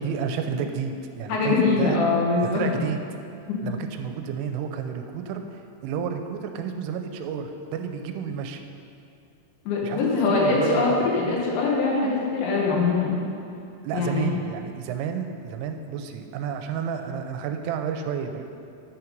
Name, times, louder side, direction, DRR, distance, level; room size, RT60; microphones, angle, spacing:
voice 1, 0.0-2.0 2.5-3.0 3.6-8.6 9.8-10.1 10.4-11.0 11.3-11.4 13.8-18.4, right 7 dB, 85° right, 6 dB, 3.1 m, -31 dB
voice 2, 1.3-2.8 3.5-3.6 9.7-13.2 13.9-14.4, left 3 dB, 75° left, -3 dB, 3.3 m, -23 dB
9.4 x 5.8 x 5.2 m, 2.5 s
omnidirectional pair, 5.6 m